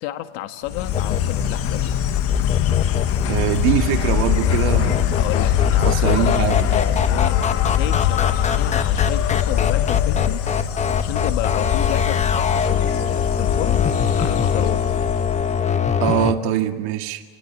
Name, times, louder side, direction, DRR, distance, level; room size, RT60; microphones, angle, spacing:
voice 1, 0.0-2.0 5.2-10.4 11.0-13.9 14.2-14.9, left 13 dB, 75° left, 9 dB, 1.7 m, -31 dB
Insect, 0.7-15.7, left 10 dB, 45° left, 1.4 m, -22 dB
sound 1, 0.9-16.3, left 7 dB, 20° left, 1.1 m, -24 dB
voice 2, 3.3-5.1 5.8-6.7 16.0-17.2, right 13 dB, 70° right, 5 dB, 2.2 m, -23 dB
27.5 x 20.0 x 8.9 m, 1.3 s
supercardioid pair, 125°, 32 cm